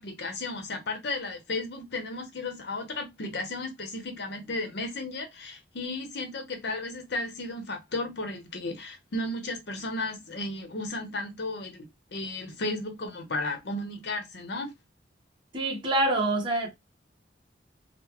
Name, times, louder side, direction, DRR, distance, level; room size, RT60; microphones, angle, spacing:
voice 1, 0.0-14.7, left 2 dB, 65° left, 0.7 m, -34 dB
voice 2, 15.5-16.7, right 2 dB, 25° right, 0.9 m, -26 dB
3.8 x 2.0 x 2.8 m
head